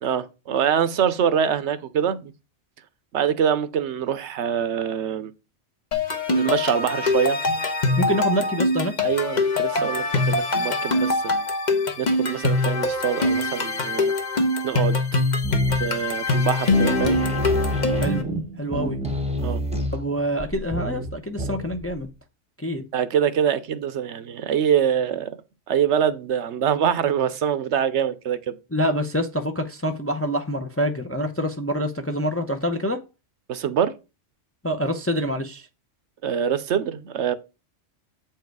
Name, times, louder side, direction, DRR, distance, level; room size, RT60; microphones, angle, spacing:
voice 1, 0.0-2.3 3.1-5.3 6.3-7.4 9.0-11.3 12.0-14.1 14.6-15.0 15.8-17.2 19.4-19.6 22.9-25.4 25.7-28.6 33.5-33.9 36.2-37.4, right 8 dB, 70° right, 0.9 m, -24 dB
sound 1, 5.9-18.2, left 2 dB, 40° left, 1.1 m, -23 dB
voice 2, 8.0-8.9 18.0-18.2 18.6-19.0 19.9-22.1 22.6-22.8 28.7-33.0 34.6-35.7, equal, 15° left, 0.5 m, -26 dB
sound 2, 15.4-16.0 16.4-16.5 16.7-22.1, equal, 5° right, 1.0 m, -27 dB
7.8 x 4.6 x 4.7 m
omnidirectional pair, 1.3 m